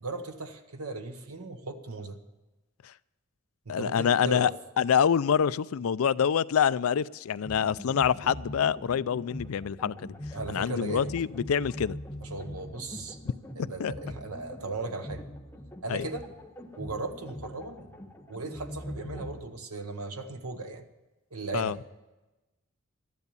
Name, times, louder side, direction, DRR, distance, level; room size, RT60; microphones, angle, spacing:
voice 1, 0.0-2.2 3.7-4.5 10.3-11.1 12.2-13.2 13.6-15.2 15.8-16.3 16.8-17.9 18.3-20.8 21.3-21.8, right 3 dB, 90° right, 6 dB, 1.1 m, -37 dB
voice 2, 3.7-4.5 4.8-10.1 10.5-12.0 13.8-13.9 15.9-16.1 21.5-21.8, left 7 dB, 75° left, 17 dB, 0.4 m, -26 dB
sound 1, 7.4-19.4, left 1 dB, 10° left, 0.8 m, -42 dB
13.5 x 10.5 x 6.9 m, 1.1 s
head